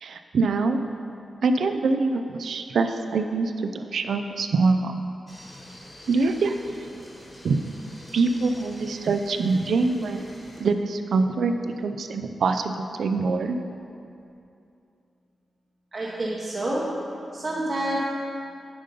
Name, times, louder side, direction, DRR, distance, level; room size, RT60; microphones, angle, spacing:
voice 1, 0.0-0.8 1.4-4.9 6.1-6.6 7.4-7.6 8.1-10.3 10.6-13.6, right 3 dB, 75° right, 7 dB, 0.5 m, -24 dB
sound 1, 5.3-10.6, left 1 dB, 25° left, 1.5 m, -46 dB
voice 2, 15.9-16.9 17.3-18.0, right 1 dB, 35° right, -5 dB, 0.9 m, -28 dB
9.4 x 5.3 x 5.3 m, 2.6 s
wide cardioid pair, 175°, 0 cm